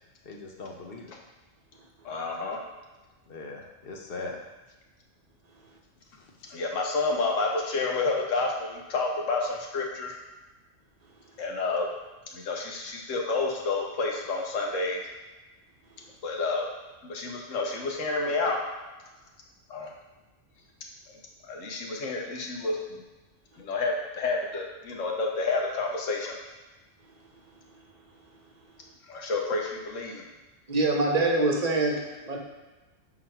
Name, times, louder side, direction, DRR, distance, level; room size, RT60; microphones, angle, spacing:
voice 1, 0.2-1.1 3.3-4.4 6.2-6.6, left 3 dB, 55° left, 1 dB, 0.9 m, -40 dB
voice 2, 2.0-2.6 6.5-10.1 11.4-11.9 12.3-15.0 16.2-16.7 17.1-18.6 19.7-19.9 21.5-23.0 23.6-26.4 29.1-30.2, left 3 dB, 85° left, 0 dB, 1.3 m, -29 dB
voice 3, 30.7-32.4, right 2 dB, 35° right, 0 dB, 0.9 m, -25 dB
6.0 x 4.0 x 4.4 m, 1.2 s
omnidirectional pair, 1.3 m